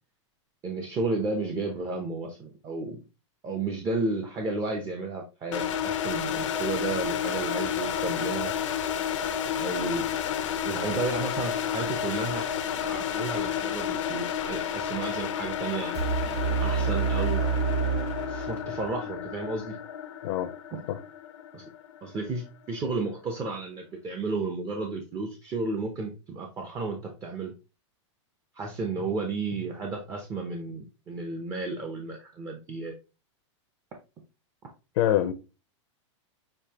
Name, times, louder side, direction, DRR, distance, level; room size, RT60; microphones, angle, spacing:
voice 1, 0.6-3.0 3.4-8.5 9.5-10.1 10.7-12.5 12.8-15.9 16.6-17.4 18.3-19.8 20.7-20.8 21.5-21.6 22.0-27.5 28.5-32.9, right 3 dB, 20° right, 0.7 m, -32 dB
sound 1, 5.5-22.4, left 9 dB, 90° left, 0.8 m, -31 dB
sound 2, 15.9-18.9, right 6 dB, 55° right, 1.0 m, -28 dB
voice 2, 35.0-35.3, left 12 dB, 55° left, 0.6 m, -24 dB
6.6 x 2.8 x 2.8 m
supercardioid pair, 150°, 16 cm